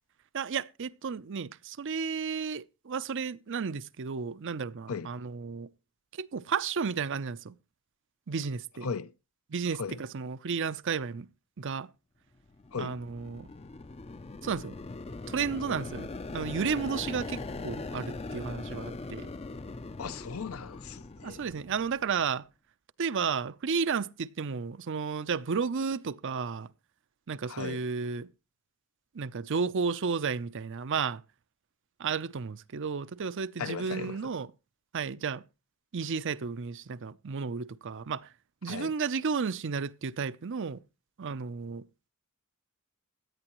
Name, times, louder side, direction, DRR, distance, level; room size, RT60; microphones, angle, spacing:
voice 1, 0.3-5.7 6.2-7.6 8.3-8.9 9.5-11.3 11.6-11.9 12.8-13.5 14.4-14.8 15.3-19.3 21.2-22.5 23.0-26.7 27.3-28.3 29.1-31.2 32.0-34.5 34.9-35.4 35.9-38.3 38.6-40.8 41.2-41.8, right 5 dB, 60° right, 0.6 m, -33 dB
sound 1, 12.5-22.3, left 3 dB, 30° left, 0.5 m, -41 dB
voice 2, 20.0-21.4 27.5-27.8 33.6-34.3 38.7-38.9, left 5 dB, 70° left, 0.7 m, -37 dB
17.0 x 10.5 x 3.0 m
head